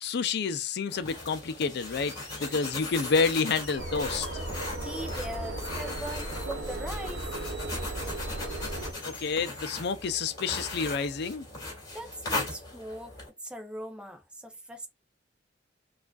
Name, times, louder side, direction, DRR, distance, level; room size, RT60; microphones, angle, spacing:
voice 1, 0.0-4.3 9.0-11.5, left 5 dB, 60° left, 0.5 m, -29 dB
sound 1, 0.9-13.3, left 2 dB, 20° left, 2.3 m, -39 dB
sound 2, 1.7-9.7, left 3 dB, 40° left, 2.1 m, -49 dB
sound 3, 3.7-8.9, right 1 dB, 85° right, 0.8 m, -36 dB
voice 2, 4.8-7.2 11.9-14.9, equal, 5° right, 0.6 m, -40 dB
4.7 x 2.5 x 2.3 m
head